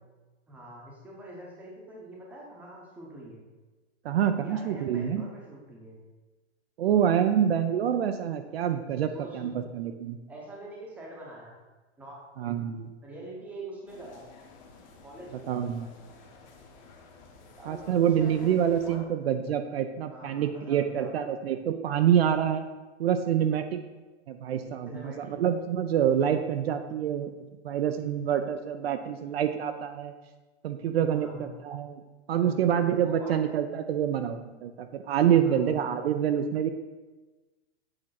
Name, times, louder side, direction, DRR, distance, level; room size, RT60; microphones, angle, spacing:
voice 1, 0.5-3.4 4.3-6.0 9.1-9.5 10.3-11.5 12.0-12.2 13.0-14.2 15.0-15.5 17.6-19.0 20.1-21.1 24.9-25.3 31.1-31.5 32.4-33.4 35.4-35.8, right 1 dB, 5° right, -3 dB, 0.8 m, -44 dB
voice 2, 4.0-5.2 6.8-10.2 12.4-12.9 15.5-15.9 17.7-22.6 23.0-23.8 24.3-27.3 27.6-30.1 30.6-31.9 32.3-36.7, right 9 dB, 55° right, 8 dB, 0.5 m, -26 dB
sound 1, 13.9-19.0, left 4 dB, 40° left, 1.2 m, -52 dB
7.8 x 3.6 x 5.7 m, 1.2 s
hypercardioid pair, 170°, 36 cm